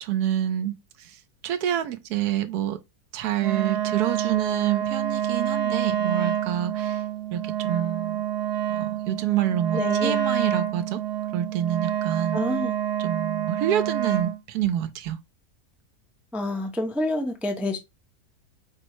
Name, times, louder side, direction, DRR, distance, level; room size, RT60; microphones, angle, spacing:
voice 1, 0.0-2.8 3.1-7.0 7.3-8.3 8.7-11.0 11.3-12.4 13.0-15.2, right 11 dB, 85° right, 1.2 m, -27 dB
Wind instrument woodwind instrument, 3.4-14.4, right 10 dB, 50° right, 0.9 m, -27 dB
voice 2, 9.7-10.2 12.3-12.7 16.3-17.8, left 1 dB, ahead, 0.5 m, -28 dB
5.2 x 2.1 x 4.4 m
omnidirectional pair, 1.7 m